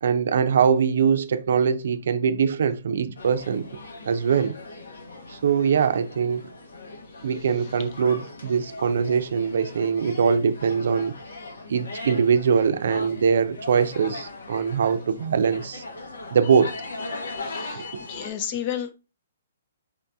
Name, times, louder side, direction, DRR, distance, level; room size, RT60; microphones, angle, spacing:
voice 1, 0.0-3.7 4.1-4.5 5.3-6.4 7.2-11.1 11.7-15.8 16.3-16.8 17.8-17.9, right 6 dB, 65° right, 0.5 m, -22 dB
sound 1, 3.2-18.3, left 3 dB, 85° left, 1.2 m, -39 dB
voice 2, 17.4-18.9, left 9 dB, 35° left, 0.6 m, -32 dB
4.9 x 2.6 x 3.5 m
hypercardioid pair, 155°, 0 cm